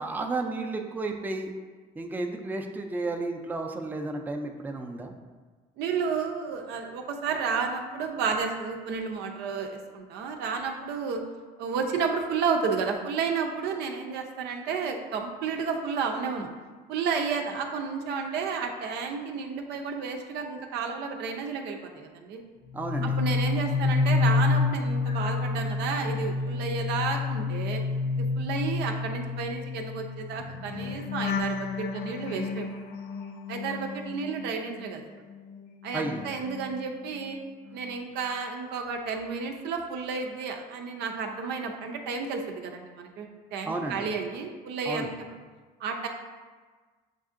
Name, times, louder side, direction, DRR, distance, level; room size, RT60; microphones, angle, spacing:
voice 1, 0.0-1.5 2.0-5.1 22.7-23.2 35.9-36.2 43.6-44.1 44.9-45.1, right 2 dB, 10° right, 3 dB, 0.4 m, -32 dB
voice 2, 5.8-11.2 11.6-16.5 16.9-22.4 23.0-27.8 28.1-32.7 33.5-35.0 35.8-37.4 37.7-45.3 45.8-46.1, right 5 dB, 85° right, 3 dB, 0.6 m, -31 dB
sound 1, 22.7-35.0 35.3-37.4 37.7-38.0, left 4 dB, 65° left, 0.4 m, -30 dB
7.3 x 2.6 x 2.5 m, 1.4 s
cardioid pair, 110°, 17 cm